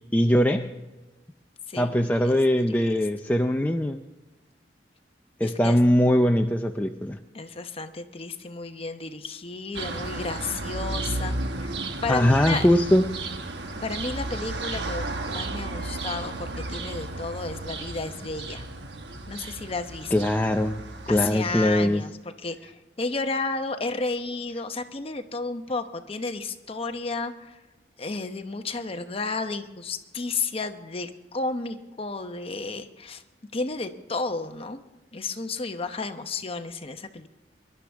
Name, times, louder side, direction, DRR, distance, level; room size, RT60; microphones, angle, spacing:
voice 1, 0.1-0.8 1.8-4.0 5.4-7.2 12.1-13.0 20.1-22.0, left 1 dB, 10° left, 4 dB, 0.4 m, -21 dB
voice 2, 1.7-2.4 2.7-3.1 5.4-5.8 7.3-11.7 12.0-12.6 13.8-18.6 19.3-20.3 21.1-27.6 28.0-33.2 33.5-34.8 35.1-37.3, left 3 dB, 35° left, 7 dB, 0.9 m, -32 dB
sound 1, 9.7-22.0, right 2 dB, 70° right, 1.2 m, -34 dB
22.5 x 11.5 x 3.5 m, 1.1 s
head